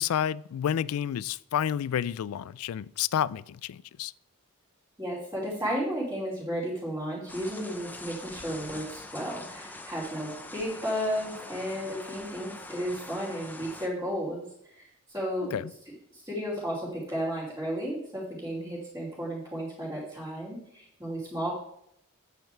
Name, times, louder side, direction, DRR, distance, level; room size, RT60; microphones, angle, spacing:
voice 1, 0.0-4.1 15.4-15.7, left 9 dB, 75° left, 0.3 m, -30 dB
voice 2, 5.0-15.6 16.1-21.5, equal, 15° right, 2.8 m, -33 dB
sound 1, 7.3-13.9, left 2 dB, 10° left, 0.6 m, -44 dB
9.0 x 7.4 x 4.4 m
head